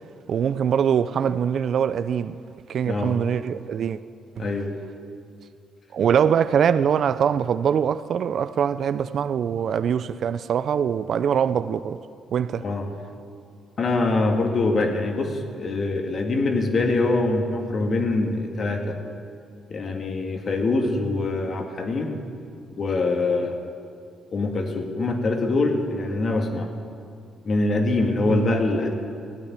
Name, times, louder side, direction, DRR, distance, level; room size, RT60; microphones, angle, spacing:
voice 1, 0.3-2.4 2.7-4.0 4.4-4.5 5.9-12.0 12.3-12.6 28.3-28.5, right 8 dB, 60° right, 0.5 m, -23 dB
voice 2, 4.4-4.7 12.6-12.9 13.8-19.0 19.7-22.2 22.8-23.6 24.3-26.7 27.5-28.9, left 2 dB, 45° left, 2.1 m, -24 dB
16.0 x 8.8 x 9.7 m
cardioid pair, 90°, 0 cm